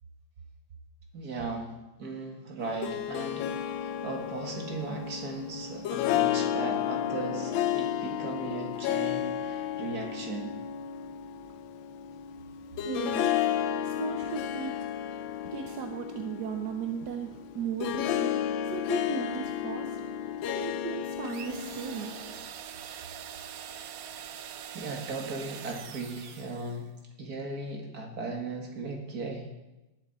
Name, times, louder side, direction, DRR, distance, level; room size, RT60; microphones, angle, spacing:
voice 1, 1.1-10.5 24.0-24.2 24.7-26.9 27.2-29.5, right 3 dB, 45° right, 2 dB, 2.4 m, -37 dB
Harp, 2.6-22.4, left 10 dB, 70° left, 1.3 m, -32 dB
voice 2, 12.8-13.5 13.8-14.7 15.5-22.1, right 7 dB, 60° right, 5 dB, 1.2 m, -36 dB
sound 1, 21.2-26.8, right 9 dB, 85° right, 0.7 m, -43 dB
18.0 x 11.5 x 4.3 m, 1.0 s
omnidirectional pair, 2.4 m